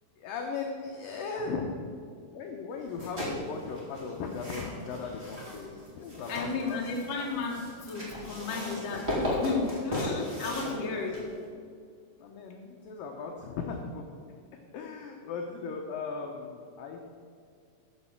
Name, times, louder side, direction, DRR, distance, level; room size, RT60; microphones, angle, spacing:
voice 1, 0.2-1.7 2.3-7.0 10.6-11.5 12.2-14.1 14.7-17.1, left 4 dB, 75° left, 1 dB, 2.1 m, -38 dB
sound 1, 2.8-11.5, left 1 dB, 15° right, 2.7 m, -36 dB
voice 2, 6.3-11.2, left 4 dB, 55° left, -1 dB, 2.0 m, -33 dB
13.5 x 5.8 x 7.2 m, 2.1 s
omnidirectional pair, 4.9 m